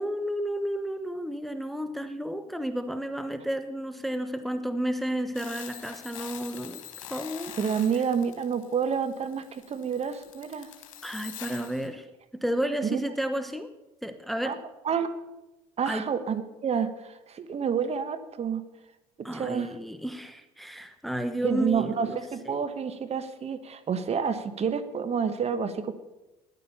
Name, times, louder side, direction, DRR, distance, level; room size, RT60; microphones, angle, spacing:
voice 1, 0.0-6.8 7.1-7.5 11.0-12.1 12.3-13.7 14.0-14.6 15.9-16.1 19.2-22.2 22.5-22.6, right 1 dB, ahead, 9 dB, 1.0 m, -32 dB
sound 1, 5.3-11.9, left 10 dB, 85° left, 1.7 m, -44 dB
voice 2, 7.6-10.7 12.8-13.0 14.4-14.6 14.8-15.1 15.8-18.6 19.3-19.7 21.4-25.9, right 7 dB, 40° right, 10 dB, 1.2 m, -29 dB
13.0 x 10.5 x 5.6 m, 1.0 s
hypercardioid pair, 65°, 16 cm